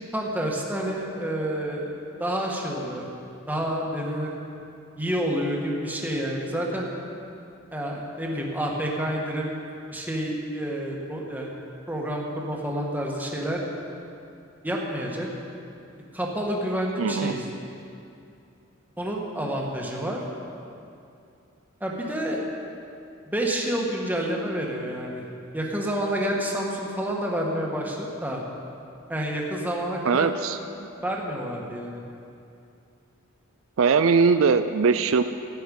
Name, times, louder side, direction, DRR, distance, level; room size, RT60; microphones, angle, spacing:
voice 1, 0.1-3.1 3.5-4.3 5.0-7.0 7.7-9.5 9.9-11.5 11.9-13.6 14.6-15.3 16.1-17.4 19.0-20.2 21.8-22.5 23.2-25.2 25.5-28.4 29.1-30.7 31.0-32.0, equal, 10° right, -1 dB, 1.6 m, -29 dB
voice 2, 17.0-17.3 30.0-30.6 33.8-35.2, right 5 dB, 70° right, 10 dB, 0.4 m, -20 dB
15.0 x 10.0 x 5.4 m, 2.6 s
head